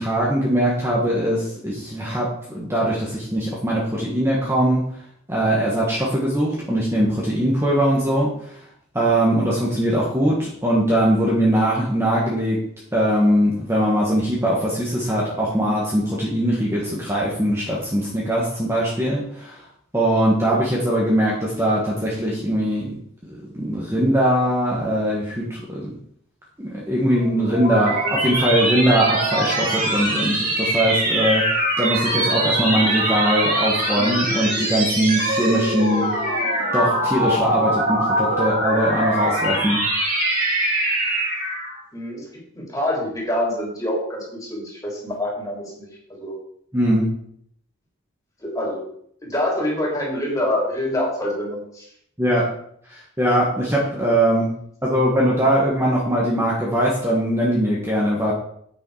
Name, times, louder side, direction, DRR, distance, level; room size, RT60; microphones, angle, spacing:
voice 1, 0.0-2.3 2.5-4.8 5.3-8.3 8.9-12.6 12.9-19.6 19.9-22.9 23.3-25.9 26.6-31.4 31.8-36.1 36.7-39.8 46.7-47.1 52.2-52.4 52.9-54.5 54.8-58.3, right 1 dB, 15° right, -5 dB, 1.7 m, -21 dB
sound 1, 27.1-41.8, right 1 dB, 45° right, 3.1 m, -23 dB
voice 2, 41.9-42.2 42.6-46.3 48.4-48.8 49.2-51.8, left 1 dB, 15° left, -3 dB, 3.4 m, -26 dB
8.8 x 6.9 x 4.9 m, 0.67 s
head